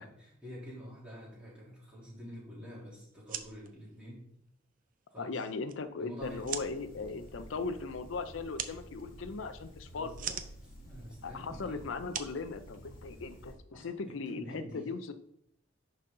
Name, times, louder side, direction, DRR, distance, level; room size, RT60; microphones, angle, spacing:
voice 1, 0.0-4.2 5.1-5.4 6.0-6.4 9.9-10.3 10.6-11.9 13.7-14.9, equal, 5° right, -8 dB, 3.2 m, -47 dB
sound 1, 3.1-13.3, right 9 dB, 45° right, 0.5 m, -45 dB
voice 2, 5.2-10.2 11.2-15.1, left 4 dB, 75° left, 10 dB, 0.5 m, -38 dB
sound 2, 6.2-13.6, equal, 50° left, 2.0 m, -51 dB
10.5 x 4.1 x 3.8 m, 0.74 s
head